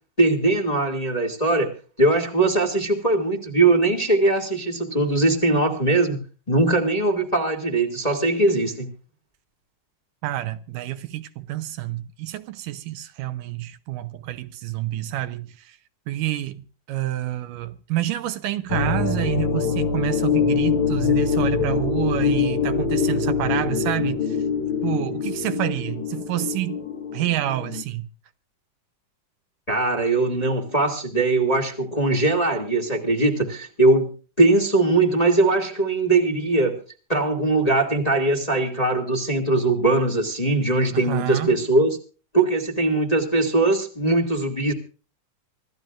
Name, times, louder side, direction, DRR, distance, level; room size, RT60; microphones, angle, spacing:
voice 1, 0.2-1.7 2.0-6.2 6.5-8.9 29.7-36.8 37.1-42.0 42.3-44.7, right 2 dB, 15° left, 1.7 m, -21 dB
voice 2, 10.2-15.8 16.1-24.4 24.8-26.8 27.1-28.1 40.9-41.6, right 14 dB, 80° right, 2.3 m, -28 dB
sound 1, 18.7-27.8, left 6 dB, 45° left, 1.9 m, -24 dB
26.0 x 15.0 x 2.5 m
omnidirectional pair, 3.9 m